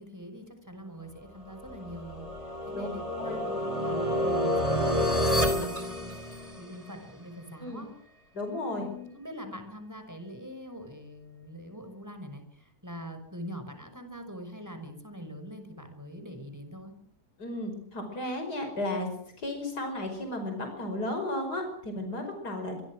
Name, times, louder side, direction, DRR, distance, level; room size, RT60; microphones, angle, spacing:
voice 1, 0.0-7.9 8.6-16.9, equal, 10° right, 7 dB, 5.9 m, -44 dB
sound 1, 1.6-6.8, equal, 20° left, 4.1 m, -29 dB
voice 2, 8.3-8.9 17.4-19.1 19.4-22.8, left 1 dB, 80° left, 5 dB, 5.9 m, -34 dB
26.0 x 23.5 x 6.4 m, 0.63 s
omnidirectional pair, 1.7 m